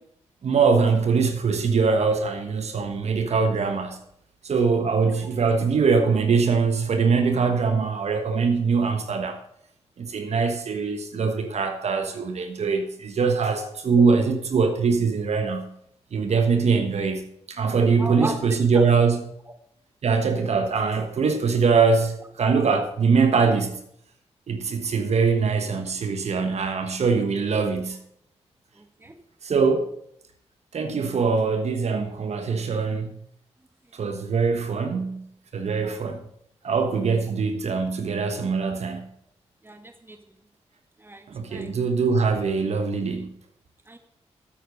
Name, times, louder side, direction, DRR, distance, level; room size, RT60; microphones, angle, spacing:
voice 1, 0.4-4.0 4.4-9.4 10.0-15.7 16.1-17.2 17.5-19.2 20.0-23.8 24.5-28.0 29.4-29.9 30.7-33.2 33.9-35.2 35.5-36.2 36.6-39.0 41.3-43.3, right 5 dB, 65° right, 1.3 m, -22 dB
voice 2, 18.0-18.4 18.7-18.9 19.5-19.6 28.7-29.2 35.8-36.0 39.6-40.2 41.0-41.7 42.8-42.9 43.9-44.0, right 2 dB, 20° right, 1.6 m, -37 dB
8.8 x 8.0 x 6.3 m
cardioid pair, 55°, 12 cm